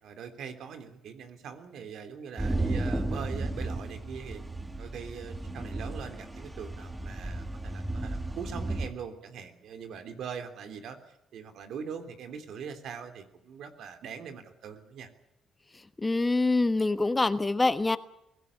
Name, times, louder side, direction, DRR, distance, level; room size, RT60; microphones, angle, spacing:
voice 1, 0.0-4.4 4.8-15.1, right 7 dB, 75° right, 8 dB, 3.4 m, -42 dB
sound 1, 2.4-8.9, right 2 dB, 10° right, 1.9 m, -34 dB
voice 2, 16.0-18.0, left 2 dB, 20° left, 12 dB, 1.2 m, -25 dB
23.0 x 17.0 x 9.8 m, 0.79 s
cardioid pair, 90°, 0 cm